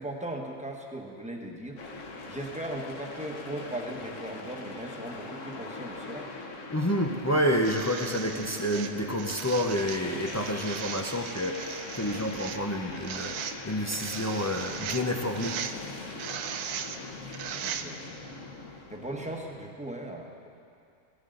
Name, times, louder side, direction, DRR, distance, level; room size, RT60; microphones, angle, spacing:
voice 1, 0.0-6.3 12.1-12.3 17.2-17.4 17.6-18.3 18.9-20.5, right 1 dB, 5° right, 1 dB, 1.1 m, -38 dB
sound 1, 1.8-19.4, left 3 dB, 55° left, 1.4 m, -42 dB
voice 2, 6.7-15.6 15.9-16.2, equal, 25° left, 2 dB, 0.3 m, -29 dB
sound 2, 7.6-18.2 19.3-19.4, right 8 dB, 80° right, 1.2 m, -38 dB
18.0 x 14.5 x 3.9 m, 2.4 s
omnidirectional pair, 1.6 m